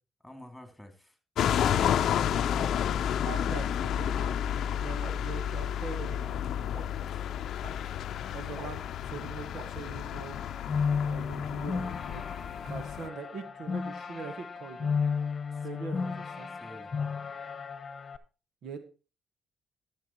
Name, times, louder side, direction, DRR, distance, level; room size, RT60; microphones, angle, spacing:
voice 1, 0.2-1.2 5.0-5.3 6.8-7.2 15.5-16.0 16.6-16.9, left 1 dB, ahead, 6 dB, 2.8 m, -51 dB
sound 1, 1.4-13.1, left 9 dB, 70° left, 0.6 m, -31 dB
sound 2, 2.6-2.7 3.3-3.4 4.2-4.3 5.0-5.1 5.9-6.0 6.7-6.8 7.6-7.7 8.6-8.7 9.6-9.7, right 2 dB, 50° right, 6.9 m, -44 dB
voice 2, 3.2-4.2 4.8-6.4 8.3-10.5 11.1-14.9 15.6-16.5 18.6-18.8, right 5 dB, 70° right, 9 dB, 1.5 m, -42 dB
sound 3, 10.2-18.2, left 5 dB, 40° left, 1.0 m, -33 dB
12.5 x 7.1 x 4.5 m, 0.34 s
cardioid pair, 90°, 0 cm